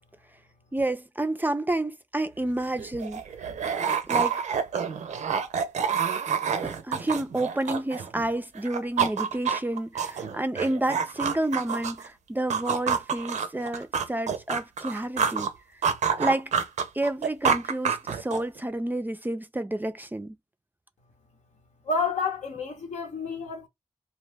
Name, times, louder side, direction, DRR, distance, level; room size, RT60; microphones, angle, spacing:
voice 1, 0.7-3.2 4.1-4.4 6.6-15.5 16.2-16.5 16.9-20.4, right 1 dB, 15° right, 0.3 m, -30 dB
sound 1, 2.4-2.5 2.8-8.3 8.6-12.1 12.5-15.5 15.8-18.6, right 7 dB, 80° right, 0.4 m, -28 dB
voice 2, 21.9-23.7, left 4 dB, 80° left, 0.9 m, -29 dB
2.4 x 2.0 x 3.3 m
cardioid pair, 55°, 12 cm